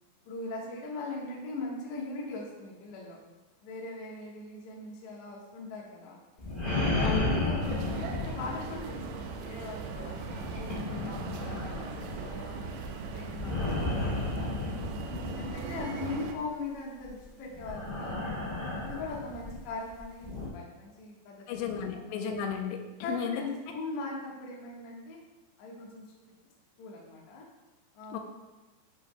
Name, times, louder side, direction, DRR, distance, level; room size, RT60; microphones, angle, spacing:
voice 1, 0.3-3.2 3.6-6.2 6.7-10.2 10.5-12.8 13.1-14.5 15.4-18.5 18.8-21.7 23.0-25.2 25.6-26.0 26.8-27.5 27.9-28.2, left 3 dB, 65° left, -3 dB, 2.0 m, -40 dB
sound 1, 6.4-9.3 9.9-16.0 17.0-17.2 17.5-20.5, left 2 dB, 20° left, 1.5 m, -33 dB
voice 2, 7.0-7.3 21.5-23.4 28.1-28.2, left 7 dB, 90° left, 4 dB, 2.9 m, -33 dB
sound 2, 7.6-16.3, right 5 dB, 80° right, 2.6 m, -39 dB
10.0 x 7.1 x 2.2 m, 1.2 s
omnidirectional pair, 5.0 m